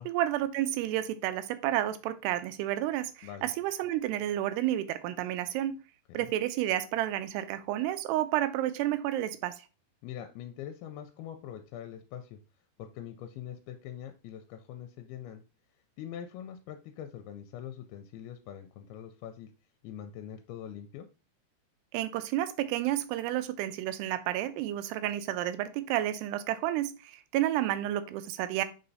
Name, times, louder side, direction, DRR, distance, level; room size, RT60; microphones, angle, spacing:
voice 1, 0.0-5.8 6.1-9.6 21.9-28.7, right 13 dB, 85° right, 11 dB, 2.7 m, -31 dB
voice 2, 10.0-12.4 12.8-15.4 16.0-19.5 19.8-21.1, left 10 dB, 80° left, 7 dB, 2.4 m, -43 dB
5.5 x 4.4 x 4.0 m, 0.33 s
omnidirectional pair, 4.7 m